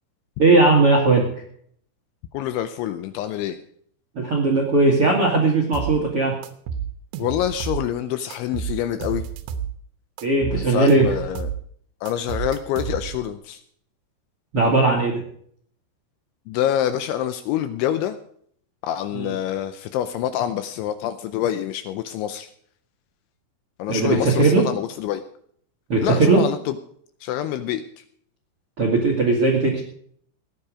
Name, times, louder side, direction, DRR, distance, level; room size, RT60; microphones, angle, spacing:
voice 1, 0.4-1.3 4.1-6.3 10.2-11.1 14.5-15.2 19.1-19.3 23.9-24.6 25.9-26.4 28.8-29.8, right 3 dB, 55° right, 1 dB, 1.5 m, -18 dB
voice 2, 2.3-3.6 7.2-9.2 10.5-11.5 12.0-13.6 16.5-18.2 18.8-22.5 23.8-25.2 26.0-26.8 27.2-28.0, left 11 dB, 80° left, 10 dB, 2.8 m, -26 dB
sound 1, 5.7-6.0 6.4-7.9 8.3-9.7 10.2-11.6 12.1-13.3, right 7 dB, 75° right, 2.8 m, -30 dB
16.5 x 10.5 x 5.0 m, 0.63 s
omnidirectional pair, 5.9 m